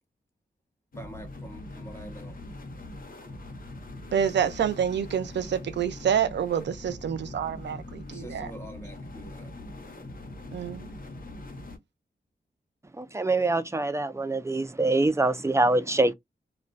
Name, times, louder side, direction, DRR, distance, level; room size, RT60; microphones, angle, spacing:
sound 1, 0.9-11.8, left 2 dB, 55° left, 0.8 m, -42 dB
voice 1, 1.0-2.4 8.1-9.5, right 1 dB, 15° left, 1.1 m, -45 dB
voice 2, 4.1-8.5 10.5-10.9, right 8 dB, 85° right, 0.4 m, -27 dB
voice 3, 13.0-16.1, right 2 dB, 15° right, 0.4 m, -24 dB
2.2 x 2.2 x 2.5 m
cardioid pair, 60°, 18 cm